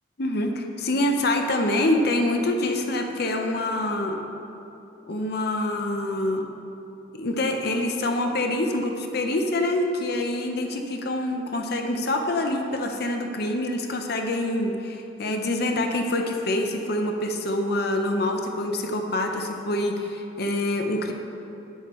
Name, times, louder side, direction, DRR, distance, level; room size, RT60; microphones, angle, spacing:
voice 1, 0.2-4.2 5.1-6.4 7.1-21.1, left 1 dB, 55° left, 4 dB, 0.7 m, -26 dB
11.0 x 9.3 x 3.1 m, 2.9 s
head